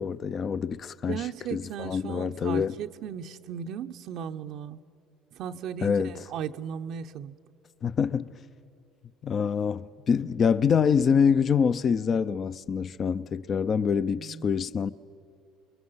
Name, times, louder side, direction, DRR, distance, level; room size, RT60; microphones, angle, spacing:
voice 1, 0.0-1.2 1.5-2.7 5.8-6.1 7.8-8.4 9.2-14.9, left 6 dB, 45° left, 0.6 m, -25 dB
voice 2, 1.1-4.8 5.3-7.4 14.2-14.5, right 8 dB, 65° right, 0.7 m, -36 dB
27.0 x 22.5 x 5.7 m
supercardioid pair, 80°, 0 cm